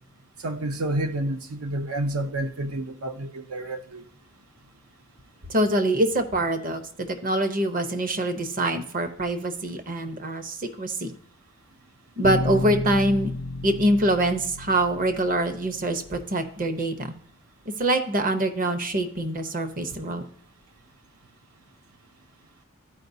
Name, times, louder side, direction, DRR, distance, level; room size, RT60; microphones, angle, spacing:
voice 1, 0.4-4.1, right 1 dB, 85° right, 0.6 m, -29 dB
voice 2, 5.5-11.1 12.2-13.3 13.6-17.1 17.7-20.2, right 1 dB, 40° right, 0.8 m, -24 dB
sound 1, 12.2-16.3, left 3 dB, 85° left, 0.4 m, -32 dB
13.5 x 4.7 x 2.7 m
head